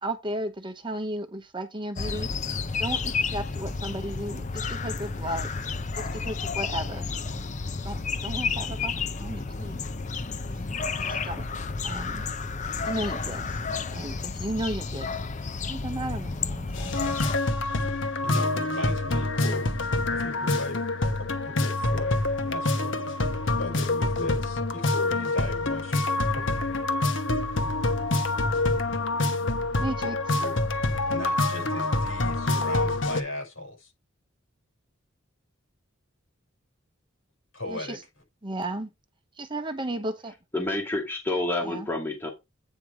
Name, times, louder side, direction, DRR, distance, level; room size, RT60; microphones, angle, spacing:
voice 1, 0.0-2.3 2.8-5.5 6.0-7.1 7.8-8.9 9.2-9.8 10.5-10.6 11.0-11.5 11.8-12.2 12.8-13.6 13.9-15.2 15.7-17.0 29.8-30.4 37.7-38.0 38.4-38.9 39.4-40.3 41.6-41.9, right 1 dB, 25° right, 0.9 m, -34 dB
sound 1, 2.0-17.4, left 4 dB, 35° left, 0.6 m, -31 dB
sound 2, 16.7-33.2, left 2 dB, 60° left, 1.1 m, -26 dB
voice 2, 17.8-19.7 20.0-20.8 21.4-22.2 22.4-22.9 23.5-26.0 26.3-26.6 27.5-27.7 30.4-30.6 31.1-33.9 37.5-38.0, left 1 dB, 80° left, 6.6 m, -37 dB
voice 3, 40.5-42.3, left 2 dB, 10° left, 2.0 m, -28 dB
9.1 x 4.7 x 4.8 m
head